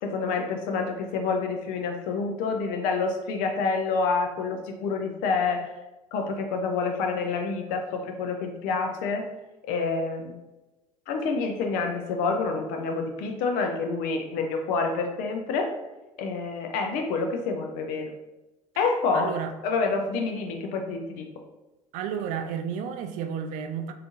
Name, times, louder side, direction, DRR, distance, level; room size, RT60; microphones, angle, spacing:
voice 1, 0.0-5.7 6.1-9.3 9.6-10.4 11.1-15.7 16.2-18.1 18.8-19.4 19.6-21.3, left 4 dB, 55° left, 4 dB, 0.6 m, -28 dB
voice 2, 19.1-19.5 21.9-23.9, right 7 dB, 50° right, 7 dB, 0.4 m, -31 dB
3.5 x 2.6 x 2.6 m, 1.0 s
figure-of-eight pair, 65°, 17 cm